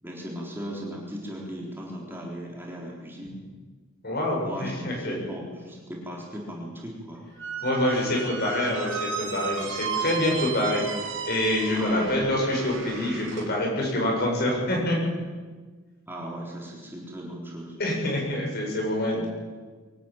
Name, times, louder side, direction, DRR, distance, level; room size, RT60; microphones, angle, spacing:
voice 1, 0.0-3.4 4.4-7.2 11.7-12.3 16.1-17.8 19.1-19.2, equal, 10° right, -3 dB, 3.9 m, -37 dB
voice 2, 4.0-5.1 7.6-10.8 11.3-15.0 17.8-19.3, left 1 dB, 50° left, -1 dB, 7.1 m, -26 dB
Squeak, 7.4-13.5, right 5 dB, 65° right, 3.6 m, -34 dB
23.5 x 12.5 x 9.1 m, 1.4 s
head